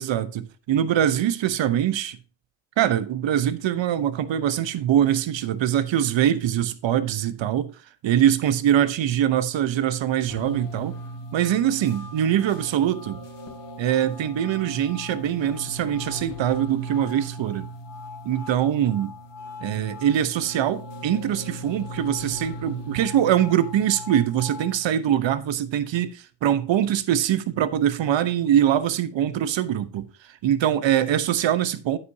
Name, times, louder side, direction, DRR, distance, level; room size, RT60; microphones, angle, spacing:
voice 1, 0.0-2.2 2.8-7.7 8.0-11.0 11.3-13.2 13.8-17.7 18.2-19.1 19.6-30.1 30.4-32.0, right 10 dB, 65° right, 1.0 m, -23 dB
sound 1, 10.3-24.8, equal, 60° left, 2.4 m, -38 dB
9.4 x 8.6 x 2.8 m
supercardioid pair, 50°, 48 cm